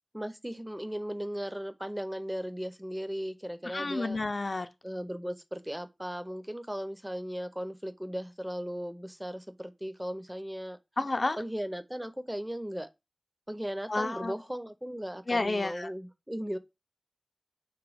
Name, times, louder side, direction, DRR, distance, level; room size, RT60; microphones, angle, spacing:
voice 1, 0.1-4.2 4.8-10.8 11.4-12.9 13.5-16.6, equal, 10° right, 0.5 m, -37 dB
voice 2, 3.6-4.7 11.0-11.4 13.9-14.3 15.3-15.9, left 2 dB, 60° left, 0.4 m, -30 dB
3.3 x 3.0 x 4.7 m
cardioid pair, 40°, 0 cm